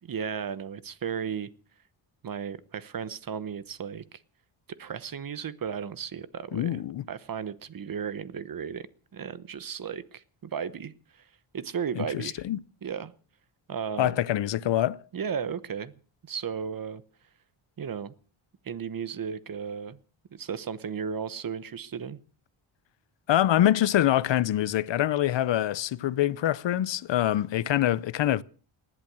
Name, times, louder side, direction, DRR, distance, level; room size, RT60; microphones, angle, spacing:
voice 1, 0.0-1.5 2.2-4.2 4.8-6.8 7.1-8.9 9.1-12.4 12.8-13.1 13.7-14.2 15.1-17.0 17.8-18.1 18.6-20.0 20.3-22.2, right 7 dB, 45° right, 1.0 m, -35 dB
voice 2, 6.5-7.0 12.2-12.6 14.0-15.0 23.3-28.4, left 12 dB, 60° left, 0.7 m, -25 dB
19.5 x 11.0 x 6.2 m
wide cardioid pair, 135°, 49 cm